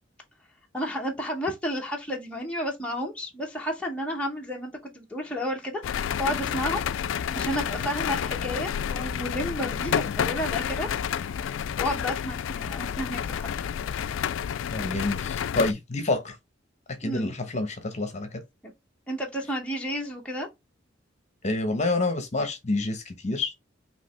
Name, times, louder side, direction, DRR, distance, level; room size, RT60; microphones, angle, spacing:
voice 1, 0.7-6.8 7.4-10.9 11.3-11.4 11.8-13.6 17.0-17.3 19.1-20.5, equal, 5° left, 1.0 m, -31 dB
sound 1, 5.8-15.7, left 8 dB, 70° left, 0.3 m, -30 dB
voice 2, 14.7-16.4 17.0-18.4 21.4-23.5, left 2 dB, 35° left, 1.1 m, -28 dB
5.0 x 3.0 x 3.3 m
head